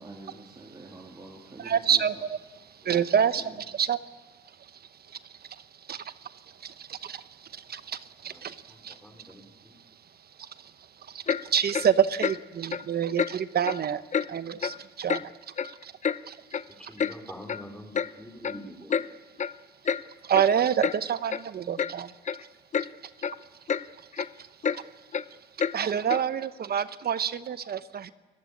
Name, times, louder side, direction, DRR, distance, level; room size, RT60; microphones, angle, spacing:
voice 1, 0.0-2.0, right 2 dB, 20° right, -1 dB, 3.3 m, -46 dB
voice 2, 1.6-2.1 2.9-3.4 3.8-4.0 5.9-6.0 8.4-8.5 11.5-14.0 14.3-15.2 20.3-22.1 25.7-28.1, right 8 dB, 50° right, 13 dB, 0.9 m, -26 dB
voice 3, 8.2-9.8 16.8-18.9, equal, 5° left, 5 dB, 4.6 m, -46 dB
Clock, 11.3-11.4 11.7-11.9 12.2-12.4 12.7-12.8 13.2-13.3 13.6-13.8 14.1-14.3 14.6-14.8 15.1-15.2 15.6-16.2 16.5-16.6 17.0-17.1 17.5-17.6 17.9-18.1 18.4-18.6 18.9-19.1 19.4-19.5 19.8-20.0 20.3-20.5 20.8-21.0 21.3-21.4 21.8-21.9 22.2-22.4 22.7-22.9 23.2-23.4 23.7-23.8 24.1-24.3 24.6-24.8 25.1-25.2 25.6-25.7 26.1-26.2, left 7 dB, 35° left, 0.8 m, -28 dB
29.5 x 15.5 x 8.6 m, 1.3 s
cardioid pair, 90°, 20 cm